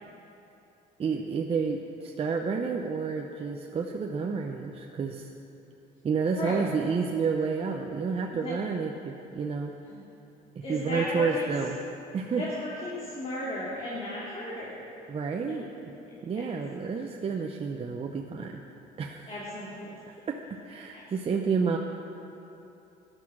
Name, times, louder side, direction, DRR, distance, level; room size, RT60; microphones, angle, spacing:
voice 1, 1.0-5.3 6.0-9.7 10.6-11.8 12.1-12.4 15.1-15.7 16.2-18.6 19.0-19.3 20.3-21.8, right 5 dB, 35° right, 2 dB, 0.8 m, -30 dB
voice 2, 6.4-6.7 8.3-8.6 9.8-10.0 10.6-11.5 12.4-14.8 15.5-15.6 16.1-16.4 19.3-20.0 20.9-21.0 21.3-21.4, left 1 dB, 35° left, -6 dB, 2.8 m, -35 dB
14.5 x 11.0 x 6.2 m, 2.9 s
cardioid pair, 110°, 17 cm